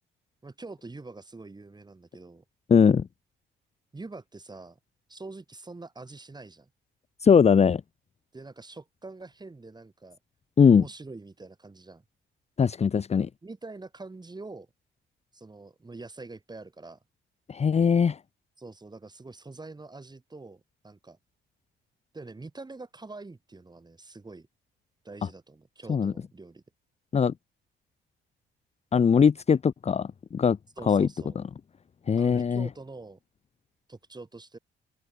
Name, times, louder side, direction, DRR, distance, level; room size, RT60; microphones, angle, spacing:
voice 1, 0.4-2.4 3.9-4.8 5.1-6.7 8.3-10.2 10.7-12.0 13.4-14.7 15.3-17.0 18.6-21.2 22.1-24.5 25.0-26.6 30.8-31.4 32.2-33.2 33.9-34.6, right 3 dB, 20° right, 4.4 m, -44 dB
voice 2, 2.7-3.1 7.2-7.8 10.6-10.9 12.6-13.3 17.5-18.2 25.9-26.1 27.1-27.3 28.9-30.6 30.9-31.1 32.1-32.7, left 6 dB, 35° left, 0.7 m, -20 dB
open air
cardioid pair, 90°, 20 cm